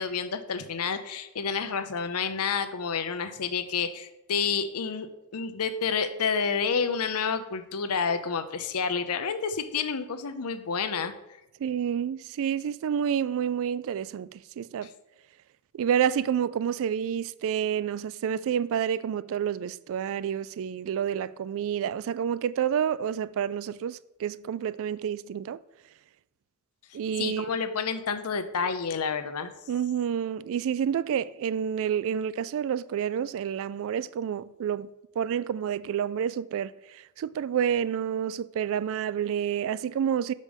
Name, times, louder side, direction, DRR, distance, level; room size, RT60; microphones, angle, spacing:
voice 1, 0.0-5.1 5.3-11.1 14.8-14.9 27.2-29.5, left 6 dB, 85° left, 0.7 m, -29 dB
voice 2, 11.6-14.9 15.7-25.6 26.9-27.6 29.7-34.9 35.2-40.3, right 8 dB, 65° right, 0.3 m, -29 dB
6.5 x 5.3 x 5.2 m
head